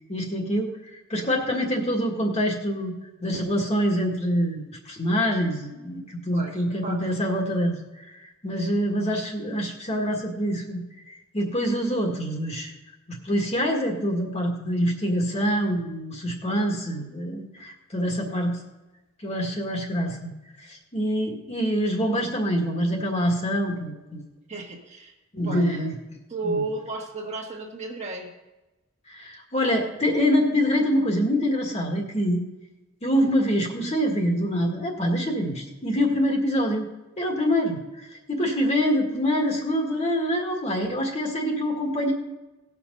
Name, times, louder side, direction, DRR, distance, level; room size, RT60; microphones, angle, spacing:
voice 1, 0.1-2.9 3.2-10.8 11.3-12.7 13.1-18.6 19.2-20.3 20.6-24.2 25.3-25.9 26.4-26.6 29.1-32.4 33.0-36.9 37.2-42.1, equal, 30° left, 1 dB, 1.7 m, -25 dB
voice 2, 6.3-7.1 24.5-25.1 25.4-25.7 26.3-28.3, right 2 dB, 30° right, 0 dB, 1.5 m, -33 dB
18.0 x 6.0 x 5.4 m, 1.0 s
head